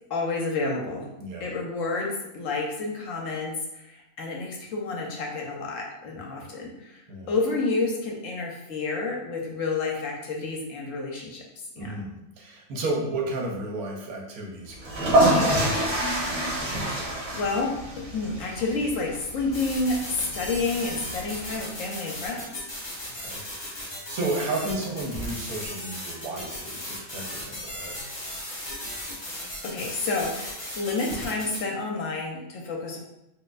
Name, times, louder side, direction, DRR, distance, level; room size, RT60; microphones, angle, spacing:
voice 1, 0.1-1.1 1.4-7.0 7.3-11.4 11.8-12.0 16.6-22.5 24.4-24.7 29.6-33.0, left 3 dB, 70° left, 0 dB, 0.9 m, -30 dB
voice 2, 1.2-1.5 6.3-6.5 7.1-7.3 11.7-16.0 23.2-27.9, right 2 dB, 80° right, -1 dB, 1.2 m, -33 dB
sound 1, 14.8-21.6, right 1 dB, 55° right, 1.3 m, -27 dB
sound 2, 19.5-31.6, left 1 dB, 30° left, 0.5 m, -37 dB
4.1 x 2.5 x 2.4 m, 0.87 s
omnidirectional pair, 1.6 m